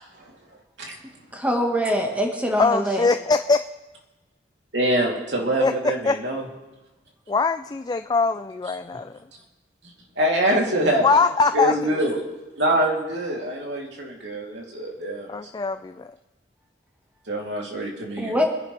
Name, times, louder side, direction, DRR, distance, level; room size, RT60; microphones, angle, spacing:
voice 1, 1.3-3.1 18.2-18.4, equal, 10° right, 1 dB, 1.6 m, -23 dB
voice 2, 2.6-3.6 5.6-6.2 7.3-9.2 11.0-11.9 15.3-16.1, left 4 dB, 25° left, 9 dB, 0.3 m, -22 dB
voice 3, 4.7-6.4 8.9-9.0 10.2-11.1 11.5-12.2 12.6-15.3 17.3-18.5, right 1 dB, 80° right, -1 dB, 3.1 m, -24 dB
24.0 x 11.0 x 3.4 m, 1.1 s
head